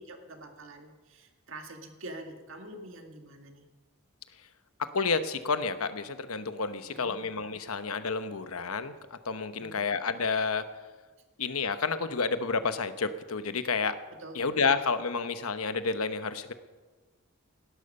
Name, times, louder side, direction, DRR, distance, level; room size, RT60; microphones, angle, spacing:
voice 1, 0.0-3.7 6.9-7.2 9.6-9.9 14.2-14.4, right 1 dB, 60° right, 4 dB, 2.0 m, -46 dB
voice 2, 4.8-8.9 9.2-10.6 11.4-14.0 14.3-16.5, left 4 dB, 75° left, 11 dB, 1.0 m, -30 dB
18.0 x 12.0 x 5.5 m, 1.3 s
head